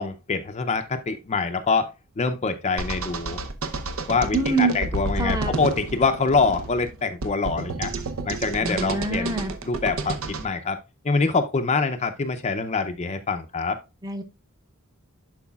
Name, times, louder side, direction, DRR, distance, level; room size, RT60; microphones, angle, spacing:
voice 1, 0.0-3.4 4.1-7.9 8.2-10.8 11.0-13.8, left 4 dB, 30° left, 0.5 m, -25 dB
sound 1, 2.8-10.5, right 2 dB, 65° right, 0.7 m, -30 dB
voice 2, 4.3-4.8 5.2-5.5 8.6-9.5 14.0-14.2, right 3 dB, 15° right, 0.8 m, -25 dB
11.0 x 4.7 x 2.3 m
head